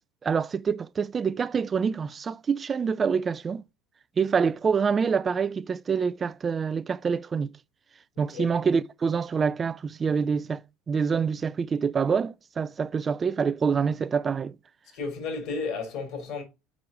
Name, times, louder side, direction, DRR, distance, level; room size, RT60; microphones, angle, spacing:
voice 1, 0.2-3.6 4.2-7.5 8.2-14.5, right 6 dB, 30° right, 0.3 m, -26 dB
voice 2, 8.2-8.5 14.9-16.4, left 4 dB, 60° left, 3.8 m, -33 dB
6.2 x 4.8 x 5.2 m
hypercardioid pair, 80°, 0 cm